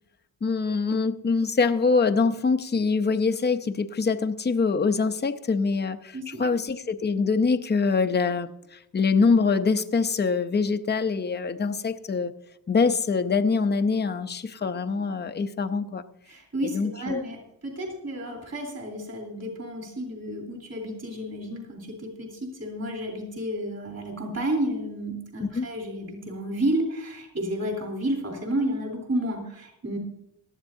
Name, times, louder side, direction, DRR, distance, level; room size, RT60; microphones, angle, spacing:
voice 1, 0.4-12.3 12.7-16.0 16.6-17.2 25.5-25.7, left 4 dB, 25° left, 0.6 m, -24 dB
voice 2, 6.1-6.6 16.2-30.0, right 1 dB, 35° right, 3.5 m, -31 dB
18.0 x 12.5 x 2.7 m
wide cardioid pair, 130°, 41 cm